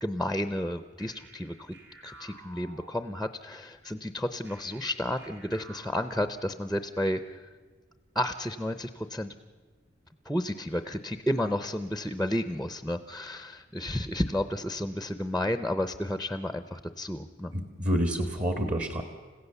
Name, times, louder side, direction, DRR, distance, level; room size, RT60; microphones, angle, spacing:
voice 1, 0.0-1.7 2.0-7.5 8.1-9.3 10.2-17.5, left 1 dB, ahead, 10 dB, 0.6 m, -32 dB
sound 1, 1.0-3.5 4.5-7.0, right 2 dB, 70° right, 4.2 m, -52 dB
voice 2, 17.5-19.0, equal, 40° right, 6 dB, 1.5 m, -28 dB
29.5 x 16.0 x 6.9 m, 1.5 s
head